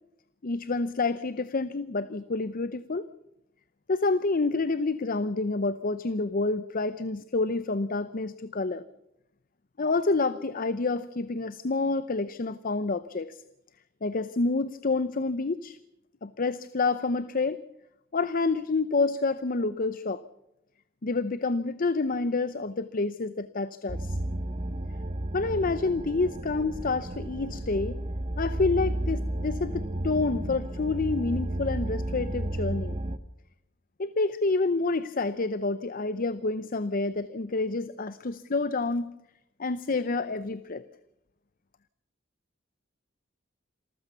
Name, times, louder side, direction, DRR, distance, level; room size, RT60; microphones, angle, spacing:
voice 1, 0.4-3.1 3.9-8.8 9.8-13.4 14.0-15.8 16.2-17.6 18.1-20.2 21.0-24.2 25.3-28.0 28.4-33.0 34.0-39.1 39.6-40.8, left 3 dB, 45° left, 15 dB, 0.7 m, -28 dB
sound 1, 23.9-33.2, right 1 dB, 30° right, 1.0 m, -32 dB
27.5 x 14.5 x 6.9 m, 0.87 s
head